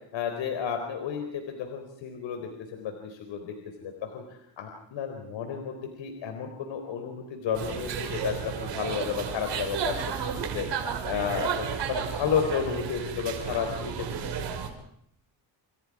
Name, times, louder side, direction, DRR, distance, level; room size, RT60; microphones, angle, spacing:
voice 1, 0.1-14.1 14.4-14.5, left 7 dB, 80° left, 5 dB, 4.2 m, -32 dB
sound 1, 7.5-14.7, right 7 dB, 65° right, 5.4 m, -33 dB
29.0 x 27.5 x 4.9 m, 0.72 s
cardioid pair, 115°, 44 cm